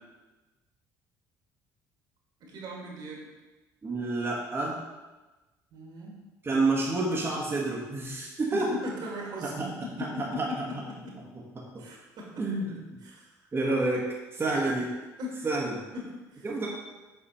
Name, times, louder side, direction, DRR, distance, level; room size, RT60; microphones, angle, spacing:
voice 1, 2.4-3.3 5.7-6.2 8.5-11.2 11.8-12.4 13.0-13.3 14.4-14.8 15.2-15.5 15.9-16.5, left 1 dB, 60° right, -2 dB, 2.1 m, -39 dB
voice 2, 3.8-4.8 6.4-8.7 9.4-9.7 10.0-10.5 12.4-12.8 13.5-14.0 14.3-14.9 15.4-15.8 16.4-16.7, right 2 dB, 30° right, -4 dB, 1.4 m, -28 dB
6.9 x 4.2 x 4.3 m, 1.2 s
supercardioid pair, 70°, 8 cm